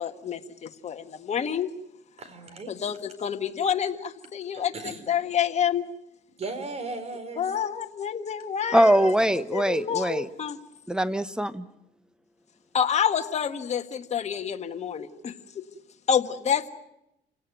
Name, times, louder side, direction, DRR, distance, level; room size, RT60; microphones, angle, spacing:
voice 1, 0.0-1.7 2.7-5.8 7.4-9.1 9.5-10.6 12.7-15.6 16.1-16.7, left 8 dB, 40° left, 6 dB, 1.7 m, -28 dB
voice 2, 2.2-2.7 4.5-5.0 6.4-7.4, right 3 dB, 40° right, 11 dB, 4.4 m, -36 dB
voice 3, 8.7-10.3 10.9-11.6, equal, 5° right, 14 dB, 1.1 m, -22 dB
28.5 x 18.0 x 9.3 m, 0.84 s
cardioid pair, 110°, 17 cm